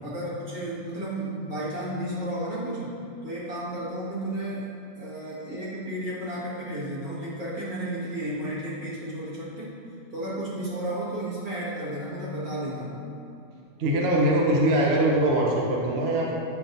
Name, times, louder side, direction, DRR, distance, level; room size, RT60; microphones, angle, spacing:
voice 1, 0.0-4.6 5.0-9.7 10.1-13.0, right 1 dB, 70° right, -9 dB, 2.2 m, -33 dB
voice 2, 13.8-16.3, right 1 dB, 50° right, -3 dB, 0.9 m, -22 dB
8.0 x 5.9 x 2.6 m, 2.6 s
omnidirectional pair, 1.6 m